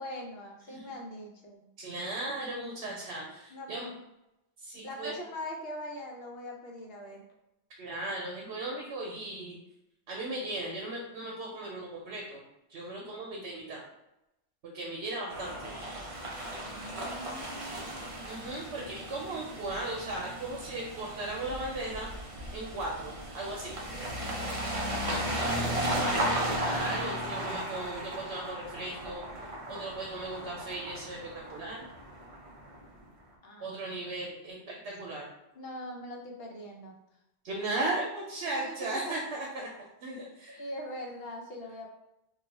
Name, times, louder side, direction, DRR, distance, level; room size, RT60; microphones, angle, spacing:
voice 1, 0.0-1.7 3.5-3.9 4.8-7.2 16.6-18.0 24.7-26.1 33.4-33.7 35.5-37.0 38.4-39.2 40.6-41.9, left 1 dB, 60° left, 0 dB, 0.9 m, -42 dB
voice 2, 1.8-3.9 4.6-5.1 7.8-9.6 10.1-12.4 12.7-13.9 14.6-15.8 18.3-22.1 22.5-23.8 26.5-31.9 33.6-35.3 37.4-40.6, right 2 dB, 75° right, -2 dB, 0.9 m, -37 dB
sound 1, 15.3-32.9, right 1 dB, 40° right, 0.5 m, -35 dB
2.4 x 2.3 x 4.0 m, 0.88 s
omnidirectional pair, 1.2 m